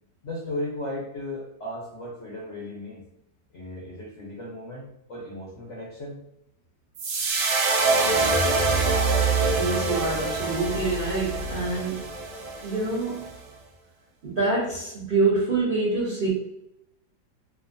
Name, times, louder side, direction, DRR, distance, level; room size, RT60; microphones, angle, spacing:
voice 1, 0.2-3.0 3.5-6.2, left 1 dB, 60° left, -4 dB, 0.8 m, -36 dB
sound 1, 7.0-13.3, right 3 dB, 85° right, 1.2 m, -25 dB
voice 2, 9.6-12.0 12.6-13.3 14.2-16.3, right 3 dB, 45° right, -8 dB, 0.7 m, -26 dB
2.9 x 2.3 x 2.5 m, 0.79 s
omnidirectional pair, 1.8 m